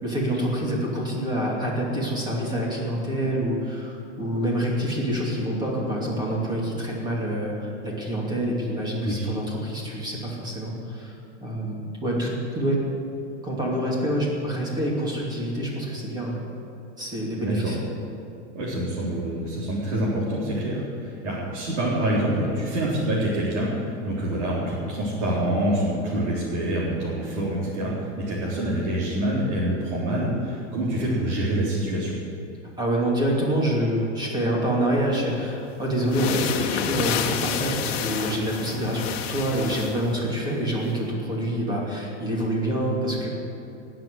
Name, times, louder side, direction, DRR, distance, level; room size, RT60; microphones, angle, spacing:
voice 1, 0.0-11.1 11.4-11.7 12.0-12.8 13.4-16.4 17.0-17.8 31.0-31.2 32.8-43.3, right 1 dB, 10° right, -3 dB, 2.7 m, -26 dB
voice 2, 17.4-17.8 18.5-32.1, right 1 dB, 75° right, -7 dB, 4.1 m, -26 dB
sound 1, 35.4-35.5 36.0-40.1, left 8 dB, 55° left, 1.3 m, -29 dB
19.0 x 7.7 x 7.9 m, 2.7 s
supercardioid pair, 165°, 37 cm